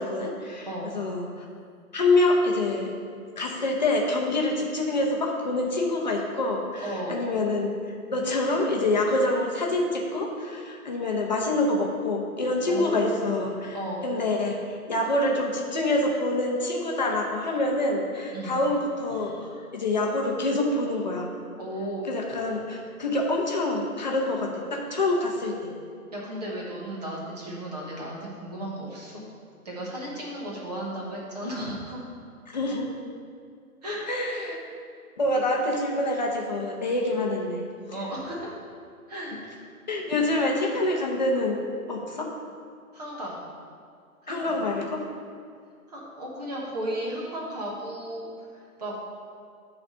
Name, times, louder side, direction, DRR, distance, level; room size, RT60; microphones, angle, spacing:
voice 1, 0.0-0.7 0.9-1.4 1.9-2.9 3.4-7.7 8.1-13.8 14.0-21.3 22.1-25.7 32.5-32.9 34.1-34.6 35.2-37.6 39.9-41.6 41.9-42.3 44.3-45.0, left 2 dB, 30° left, 0 dB, 0.8 m, -26 dB
voice 2, 0.7-1.0 6.8-7.3 12.6-14.1 18.3-18.6 21.6-22.0 26.1-29.2 29.6-32.1 33.8-34.1 37.9-38.5 39.1-39.4 42.9-43.4 44.2-44.6 45.9-48.9, right 1 dB, 25° right, -4 dB, 1.3 m, -34 dB
10.5 x 4.2 x 5.5 m, 2.2 s
hypercardioid pair, 165°, 45 cm